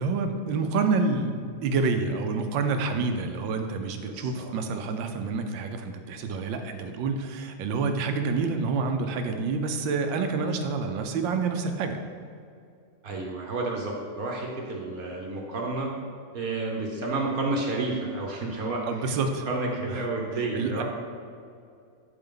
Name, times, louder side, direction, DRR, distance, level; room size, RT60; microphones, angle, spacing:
voice 1, 0.0-12.0 18.8-19.5 19.8-20.0 20.4-20.8, right 4 dB, 80° right, 6 dB, 1.4 m, -28 dB
voice 2, 4.1-4.5 13.0-15.9 16.3-19.2 19.5-20.8, right 2 dB, 55° right, -1 dB, 1.3 m, -30 dB
11.5 x 4.4 x 3.8 m, 2.4 s
omnidirectional pair, 2.0 m